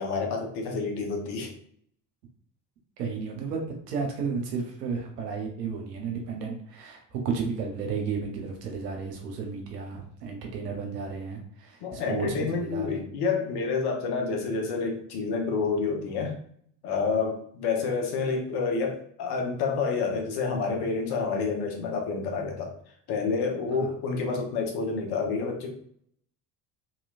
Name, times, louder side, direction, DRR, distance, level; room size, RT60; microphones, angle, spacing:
voice 1, 0.0-1.5 11.8-16.4 16.8-22.7 23.1-25.7, left 4 dB, 55° left, 1 dB, 1.0 m, -28 dB
voice 2, 3.0-13.0 23.7-23.9, right 5 dB, 80° right, 1 dB, 0.8 m, -33 dB
3.0 x 2.9 x 2.4 m, 0.62 s
hypercardioid pair, 60°, 47 cm